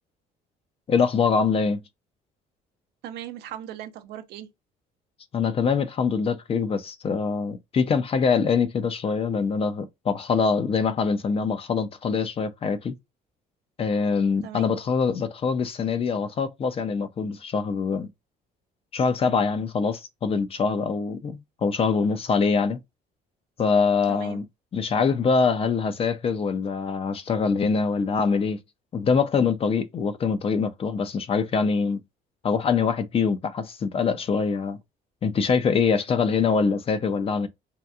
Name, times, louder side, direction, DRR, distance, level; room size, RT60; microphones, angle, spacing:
voice 1, 0.9-1.8 5.3-13.0 13.8-18.1 18.9-22.8 23.6-24.4 24.7-28.6 28.9-32.0 32.4-34.8 35.2-37.5, left 5 dB, 35° left, 0.5 m, -24 dB
voice 2, 3.0-4.5 14.4-14.8 24.1-24.4, right 11 dB, 80° right, 0.6 m, -38 dB
2.8 x 2.5 x 2.3 m
cardioid pair, 110°, 17 cm